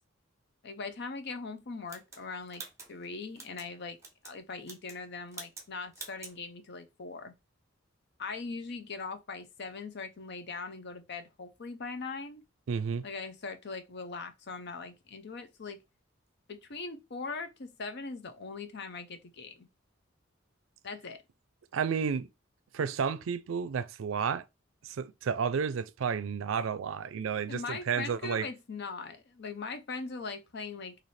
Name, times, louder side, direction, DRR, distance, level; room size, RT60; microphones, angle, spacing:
voice 1, 0.6-2.6 2.9-4.0 4.2-7.3 8.2-12.4 13.0-15.8 16.5-19.7 20.8-21.2 27.5-31.0, left 4 dB, 60° left, 0.6 m, -40 dB
sound 1, 1.9-3.7 4.0-4.4 4.6-5.0 5.3-5.7 5.9-6.4, right 3 dB, 15° right, 1.1 m, -46 dB
voice 2, 12.7-13.1 21.7-22.3 22.7-24.4 24.8-28.5, right 6 dB, 90° right, 0.4 m, -31 dB
3.3 x 2.6 x 4.1 m
head